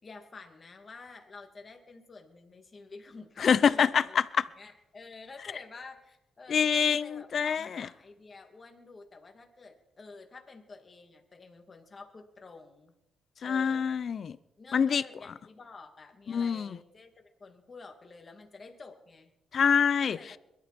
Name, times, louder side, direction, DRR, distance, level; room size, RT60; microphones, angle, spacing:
voice 1, 0.0-4.2 4.6-12.9 13.4-13.8 14.6-17.1 17.4-19.3 20.0-20.3, left 4 dB, 30° left, 2.7 m, -50 dB
voice 2, 3.4-4.4 6.5-7.9 13.4-14.4 14.7-15.0 16.3-16.8 19.5-20.2, left 7 dB, 45° left, 0.7 m, -25 dB
22.0 x 13.0 x 4.5 m
cardioid pair, 110°, 0 cm